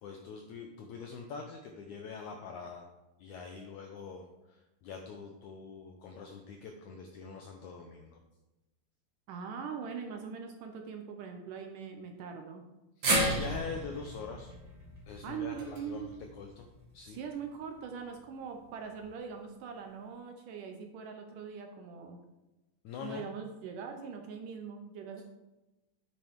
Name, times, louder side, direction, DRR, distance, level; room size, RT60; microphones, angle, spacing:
voice 1, 0.0-2.9 3.2-8.2 13.0-14.5 15.1-16.7 16.9-17.2 22.8-23.2, left 5 dB, 80° left, 3 dB, 1.7 m, -44 dB
voice 2, 9.3-12.6 15.2-16.1 17.1-22.2 23.0-25.2, right 6 dB, 75° right, 4 dB, 2.1 m, -42 dB
sound 1, 13.0-17.3 17.6-17.7 18.9-19.0, right 1 dB, 45° right, 1.8 m, -34 dB
9.2 x 8.9 x 3.6 m, 1.0 s
omnidirectional pair, 4.4 m